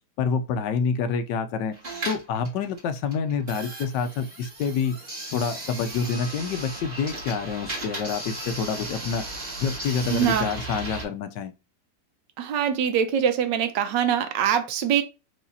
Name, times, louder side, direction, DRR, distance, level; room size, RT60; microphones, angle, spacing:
voice 1, 0.2-1.7 2.1-5.0 5.3-9.2 9.6-11.5, left 6 dB, 90° left, 1.3 m, -27 dB
sound 1, 1.7-11.1, right 2 dB, 30° right, 1.6 m, -36 dB
voice 2, 10.1-10.5 12.4-15.0, right 9 dB, 90° right, 1.4 m, -23 dB
4.8 x 2.7 x 2.7 m
omnidirectional pair, 1.8 m